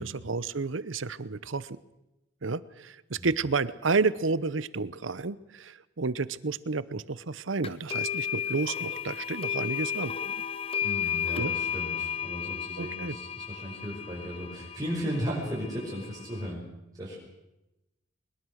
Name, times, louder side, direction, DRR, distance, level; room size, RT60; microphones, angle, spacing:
voice 1, 0.0-1.8 2.4-10.3 11.4-11.5 12.8-13.1, right 4 dB, 85° right, 18 dB, 0.9 m, -31 dB
sound 1, 7.6-16.5, left 8 dB, 30° left, 1.0 m, -34 dB
voice 2, 10.8-16.6 17.0-17.2, equal, 20° right, -5 dB, 5.9 m, -35 dB
22.0 x 21.5 x 6.5 m, 0.94 s
head